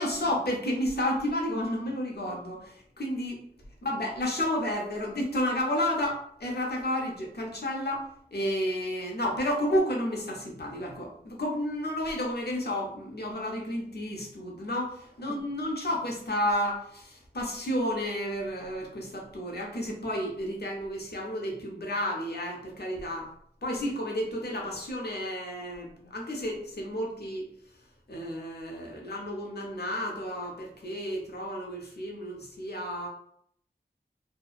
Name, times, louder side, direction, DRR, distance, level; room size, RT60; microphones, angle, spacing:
voice 1, 0.0-3.4 3.8-23.3 23.6-27.5 28.1-33.1, left 1 dB, 65° left, 0 dB, 0.7 m, -31 dB
2.7 x 2.1 x 2.4 m, 0.66 s
wide cardioid pair, 60°, 18 cm